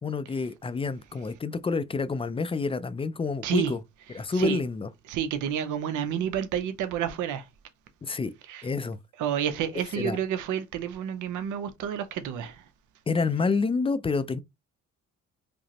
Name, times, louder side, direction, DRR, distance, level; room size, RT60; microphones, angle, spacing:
voice 1, 0.0-3.8 4.1-4.9 8.0-8.3 8.6-9.0 10.0-10.2 13.1-14.4, left 4 dB, 20° left, 0.3 m, -28 dB
voice 2, 5.1-7.5 8.5-8.7 9.2-12.6, right 9 dB, 80° right, 0.7 m, -29 dB
5.0 x 2.0 x 2.8 m
cardioid pair, 90°, 30 cm